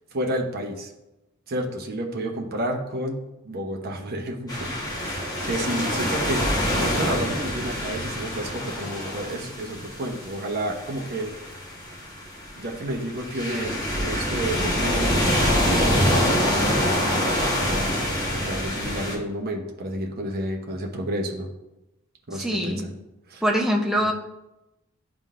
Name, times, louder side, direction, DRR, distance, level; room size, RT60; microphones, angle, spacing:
voice 1, 0.1-0.9 1.5-4.8 5.0-6.4 6.8-11.3 12.6-18.0 18.3-21.5 22.3-22.9 23.3-23.4 24.0-24.1, right 1 dB, 45° right, 0 dB, 0.9 m, -31 dB
sound 1, 4.5-19.2, equal, 20° left, 1.2 m, -26 dB
voice 2, 22.3-22.8 23.4-24.1, equal, ahead, 0 dB, 0.7 m, -23 dB
11.0 x 3.7 x 2.5 m, 0.96 s
head